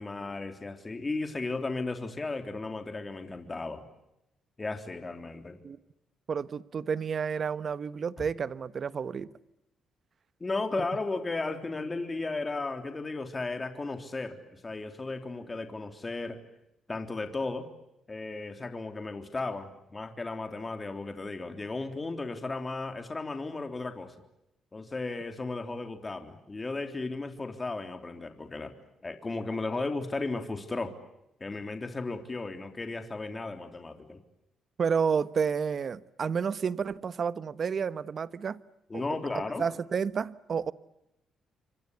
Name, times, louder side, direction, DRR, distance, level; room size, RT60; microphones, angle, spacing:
voice 1, 0.0-3.8 4.6-5.6 10.4-16.4 16.9-17.7 18.1-24.1 24.7-28.7 29.0-30.9 31.4-34.2 38.9-39.6, left 3 dB, 25° left, 3.5 m, -35 dB
voice 2, 6.3-9.3 10.8-10.9 34.8-38.6 38.9-39.0 39.6-40.7, right 6 dB, 45° right, 1.2 m, -30 dB
28.5 x 25.5 x 8.2 m
cardioid pair, 90°, 0 cm